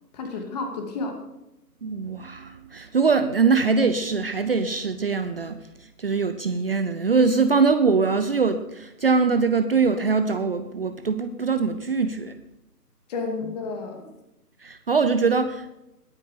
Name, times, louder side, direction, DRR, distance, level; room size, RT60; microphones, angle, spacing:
voice 1, 0.1-1.2 13.1-14.1, left 3 dB, 25° left, 4 dB, 2.5 m, -31 dB
voice 2, 1.8-5.6 6.0-12.4 14.6-15.7, right 4 dB, 35° right, 9 dB, 0.8 m, -22 dB
20.5 x 9.4 x 5.1 m, 0.90 s
figure-of-eight pair, 140°, 48 cm